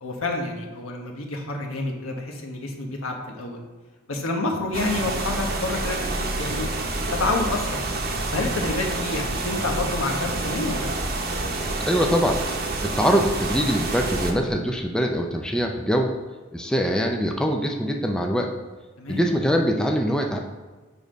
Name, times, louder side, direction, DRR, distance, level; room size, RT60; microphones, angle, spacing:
voice 1, 0.0-3.6 4.1-6.7 7.1-7.8 8.3-10.9 19.0-19.3, left 2 dB, 80° left, 2 dB, 1.2 m, -28 dB
sound 1, 4.7-14.3, right 2 dB, 45° right, 0.9 m, -28 dB
voice 2, 11.9-12.4 12.8-16.1 16.5-18.5 19.1-20.4, equal, 5° left, 2 dB, 0.4 m, -23 dB
7.2 x 4.0 x 5.1 m, 1.3 s
head